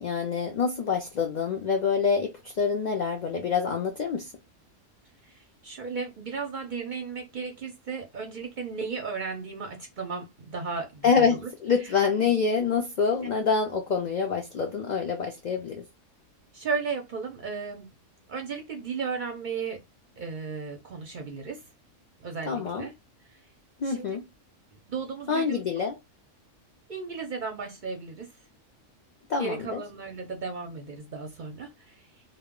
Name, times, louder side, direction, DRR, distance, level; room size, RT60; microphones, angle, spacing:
voice 1, 0.0-4.3 11.0-15.8 22.5-22.9 23.8-24.2 25.3-26.0 29.3-29.8, left 5 dB, 65° left, 0.4 m, -26 dB
voice 2, 5.2-11.5 11.8-11.9 16.5-17.9 18.3-19.8 20.2-21.6 22.2-22.9 23.3-23.4 23.8-24.1 24.7-25.6 26.9-28.3 29.4-32.0, right 5 dB, 55° right, 0.6 m, -35 dB
2.1 x 2.1 x 3.5 m
omnidirectional pair, 1.3 m